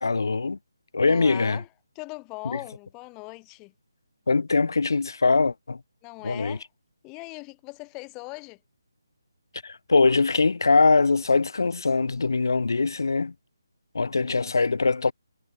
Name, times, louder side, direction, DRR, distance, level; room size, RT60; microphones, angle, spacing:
voice 1, 0.0-0.6 0.9-1.6 2.5-2.6 4.3-5.8 6.2-6.6 9.6-13.3 13.9-15.1, left 4 dB, 70° left, 1.3 m, -22 dB
voice 2, 1.1-1.7 1.9-3.7 6.0-6.7 7.0-8.6 14.0-14.5, left 27 dB, 15° left, 1.0 m, -40 dB
figure-of-eight pair, 155°, 2 cm